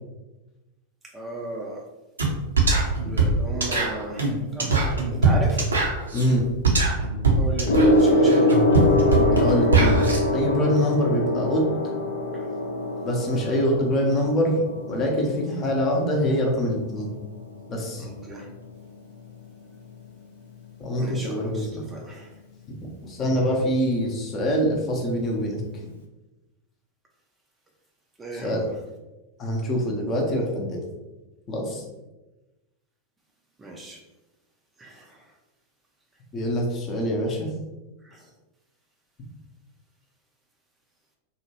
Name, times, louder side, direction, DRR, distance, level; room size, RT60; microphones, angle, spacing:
voice 1, 1.1-1.8 3.0-5.6 7.4-8.5 12.3-12.5 18.0-18.5 21.0-22.3 28.2-28.6 33.6-34.0 34.8-35.2 38.1-38.2, right 2 dB, 15° right, -1 dB, 0.4 m, -36 dB
sound 1, 2.2-2.3 2.6-10.2, right 3 dB, 75° right, 0.5 m, -21 dB
voice 2, 6.1-6.5 9.3-10.0 10.3-11.7 13.0-14.6 14.9-17.1 17.7-18.1 20.8-21.9 22.7-25.6 28.3-28.6 29.4-30.8 31.5-31.8 36.3-37.5, equal, 30° left, 0 dB, 0.7 m, -24 dB
Gong, 7.7-17.4 18.4-18.6, left 1 dB, 65° left, 0.4 m, -24 dB
2.8 x 2.2 x 2.8 m, 1.1 s
figure-of-eight pair, 90°, 0 cm